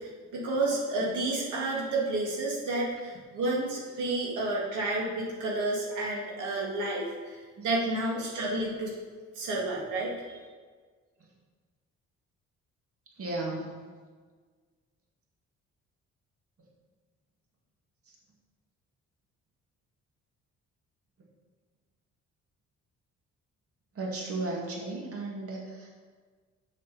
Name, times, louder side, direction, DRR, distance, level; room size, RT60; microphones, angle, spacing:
voice 1, 0.0-8.9 9.3-10.4, right 2 dB, 85° right, -3 dB, 2.1 m, -31 dB
voice 2, 13.2-13.7 18.1-18.2 23.9-25.9, right 2 dB, 50° right, -2 dB, 2.2 m, -35 dB
6.7 x 6.5 x 7.0 m, 1.5 s
cardioid pair, 90°, 30 cm